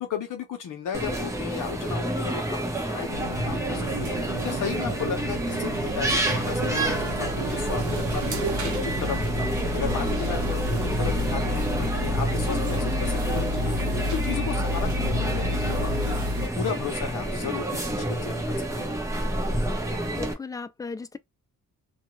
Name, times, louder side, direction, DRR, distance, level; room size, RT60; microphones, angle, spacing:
voice 1, 0.0-4.1 4.4-9.4 9.7-13.8 14.1-16.2 16.5-19.0, left 7 dB, 65° left, 0.8 m, -34 dB
sound 1, 0.9-20.3, right 1 dB, 10° right, 0.8 m, -29 dB
sound 2, 3.1-16.5, left 1 dB, 60° right, 0.9 m, -30 dB
voice 2, 20.2-21.2, left 4 dB, 10° left, 0.3 m, -36 dB
2.5 x 2.2 x 3.0 m
cardioid pair, 100°, 33 cm